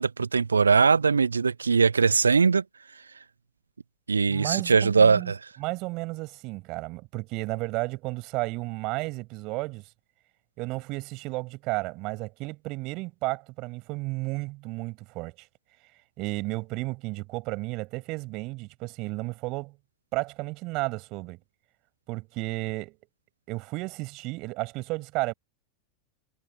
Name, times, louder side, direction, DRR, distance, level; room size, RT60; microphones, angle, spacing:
voice 1, 0.0-2.6 4.1-5.4, right 5 dB, 75° right, 0.9 m, -21 dB
voice 2, 4.3-5.3 5.6-9.9 10.6-15.5 16.2-19.8 20.1-21.4 22.1-23.0 23.5-25.3, right 23 dB, 40° right, 6.7 m, -33 dB
figure-of-eight pair, 90°, 0 cm